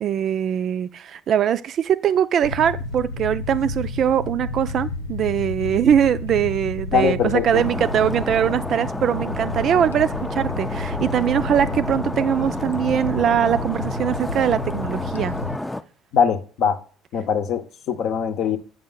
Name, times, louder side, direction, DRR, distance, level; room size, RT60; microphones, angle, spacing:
voice 1, 0.0-15.3, right 9 dB, 50° right, 0.4 m, -22 dB
sound 1, 2.4-15.6, left 2 dB, 85° left, 0.4 m, -31 dB
voice 2, 6.9-7.6 16.1-16.8 17.1-18.6, left 7 dB, 60° left, 0.8 m, -22 dB
Stream, 7.5-15.8, left 1 dB, 10° left, 0.4 m, -30 dB
7.8 x 5.2 x 3.8 m
hypercardioid pair, 60°, 0 cm